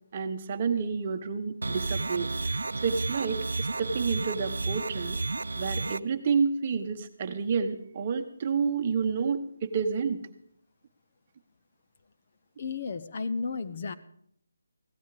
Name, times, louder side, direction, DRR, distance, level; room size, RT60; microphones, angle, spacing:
voice 1, 0.1-5.2 5.5-10.2, right 5 dB, 25° right, 7 dB, 1.1 m, -29 dB
sound 1, 1.6-6.0, right 3 dB, 80° right, 0.5 m, -32 dB
voice 2, 12.6-13.9, left 4 dB, 35° left, 10 dB, 0.7 m, -33 dB
16.5 x 13.0 x 4.9 m, 0.68 s
hypercardioid pair, 170°, 0 cm